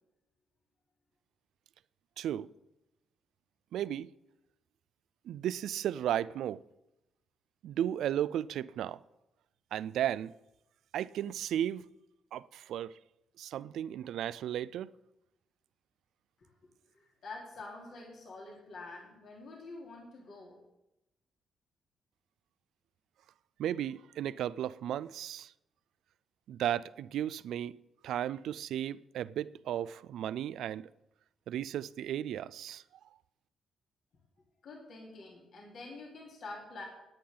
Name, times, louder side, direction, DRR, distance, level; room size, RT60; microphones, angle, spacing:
voice 1, 2.2-2.5 3.7-4.1 5.2-6.6 7.6-9.0 9.7-10.3 10.9-11.9 12.3-13.0 13.4-14.9 23.6-25.5 26.5-27.8 28.0-30.9 31.5-32.8, right 11 dB, 70° right, 0.3 m, -34 dB
voice 2, 16.9-20.6 34.6-36.8, left 3 dB, 60° left, 3.4 m, -47 dB
17.5 x 10.0 x 3.8 m
hypercardioid pair, 40°, 0 cm